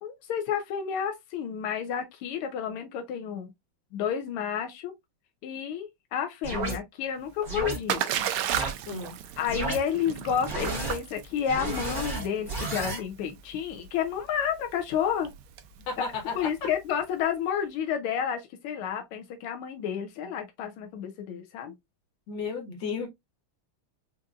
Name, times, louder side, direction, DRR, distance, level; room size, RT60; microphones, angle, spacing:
voice 1, 0.0-3.5 3.9-4.9 5.4-8.3 9.4-15.3 16.3-21.7, left 8 dB, 90° left, 1.5 m, -31 dB
sound 1, 6.4-6.8 7.4-7.8 8.5-8.7 9.5-9.8 10.4-11.0 11.5-13.0, right 2 dB, 20° right, 1.5 m, -32 dB
Splash splatter, 7.2-17.0, right 10 dB, 80° right, 1.4 m, -35 dB
voice 2, 8.9-9.2 15.9-16.7 22.3-23.1, left 5 dB, 60° left, 1.8 m, -33 dB
4.9 x 2.7 x 2.3 m
omnidirectional pair, 2.3 m